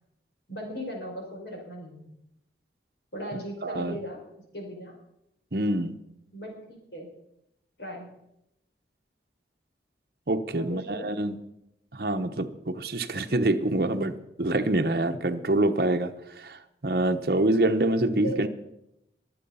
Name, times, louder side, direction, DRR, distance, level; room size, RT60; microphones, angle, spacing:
voice 1, 0.5-2.1 3.1-4.2 4.5-4.9 6.3-7.1 7.8-8.1 10.6-11.1 18.2-18.5, equal, 65° left, 1 dB, 4.8 m, -37 dB
voice 2, 3.6-4.0 5.5-5.9 10.3-11.4 11.9-14.1 14.4-18.5, right 1 dB, 55° right, 6 dB, 0.9 m, -26 dB
22.5 x 7.8 x 5.6 m, 0.83 s
head